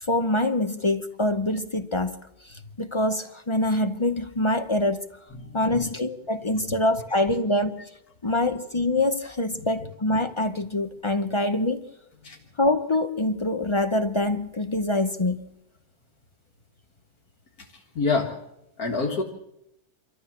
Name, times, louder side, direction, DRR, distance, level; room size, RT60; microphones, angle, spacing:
voice 1, 0.0-2.2 2.4-5.0 5.5-7.9 8.2-11.9 12.6-15.4, left 1 dB, 35° left, 10 dB, 0.5 m, -25 dB
voice 2, 5.4-5.9 12.2-12.4 17.6-18.3 18.8-19.2, left 4 dB, 65° left, 0 dB, 2.1 m, -27 dB
26.5 x 13.5 x 7.3 m, 0.86 s
omnidirectional pair, 1.7 m